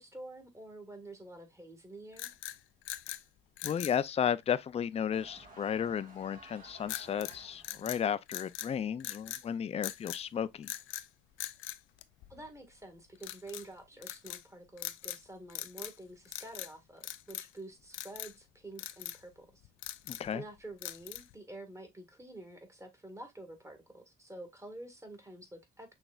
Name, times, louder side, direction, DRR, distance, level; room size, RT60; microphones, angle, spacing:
voice 1, 0.0-2.3 12.3-19.6 20.3-25.9, right 2 dB, 15° right, 1.7 m, -48 dB
sound 1, 2.1-3.2 3.6-4.0 6.9-7.4 7.6-8.7 9.0-9.5 9.8-10.2 10.6-11.1 11.4-12.6 13.2-13.7 14.0-14.4 14.8-15.2 15.5-16.0 16.3-16.7 17.0-17.6 17.9-18.3 18.8-19.2 19.6-20.3 20.8-21.4, left 14 dB, 90° left, 0.4 m, -42 dB
voice 2, 3.6-10.7 20.1-20.4, left 8 dB, 30° left, 0.4 m, -33 dB
sound 2, 5.1-7.9, right 2 dB, 45° right, 1.7 m, -54 dB
6.1 x 3.3 x 2.4 m
cardioid pair, 90°, 20 cm